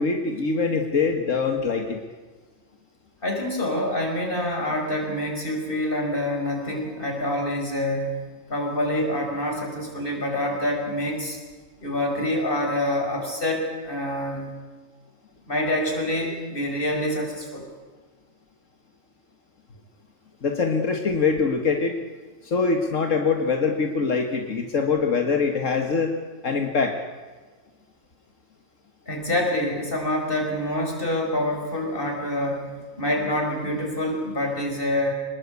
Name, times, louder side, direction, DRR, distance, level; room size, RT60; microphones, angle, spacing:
voice 1, 0.0-2.0 20.4-22.0 22.4-26.2 26.4-27.0, left 4 dB, 85° left, 3 dB, 2.0 m, -23 dB
voice 2, 3.2-8.2 8.5-11.4 11.8-14.5 15.5-17.7 29.1-35.1, left 1 dB, 45° left, 1 dB, 6.2 m, -26 dB
26.0 x 20.5 x 8.4 m, 1.4 s
omnidirectional pair, 1.3 m